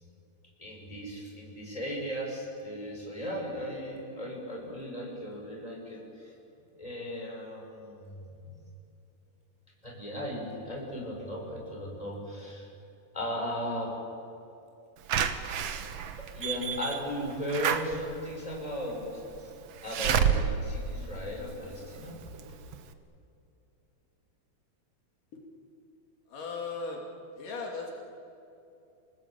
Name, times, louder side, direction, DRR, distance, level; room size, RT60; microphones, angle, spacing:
voice 1, 0.6-6.3 6.8-8.5 9.8-12.7 13.1-13.9 16.2-19.5 19.8-22.2, equal, 10° left, -1 dB, 6.6 m, -37 dB
Slam / Alarm, 15.1-21.9 22.4-22.5 22.7-22.8, right 7 dB, 60° right, 1.9 m, -30 dB
voice 2, 26.3-27.0 27.3-27.9, left 4 dB, 70° left, -1 dB, 4.4 m, -37 dB
29.5 x 19.5 x 8.9 m, 2.7 s
omnidirectional pair, 3.9 m